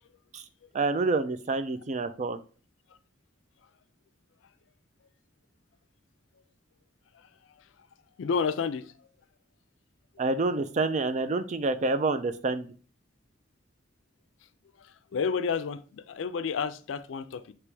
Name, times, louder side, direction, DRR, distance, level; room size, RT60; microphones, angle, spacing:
voice 1, 0.7-2.4 10.2-12.7, right 3 dB, 40° right, 0.4 m, -28 dB
voice 2, 8.2-9.1 14.8-17.5, left 5 dB, 80° left, 0.4 m, -31 dB
3.3 x 2.9 x 4.7 m
head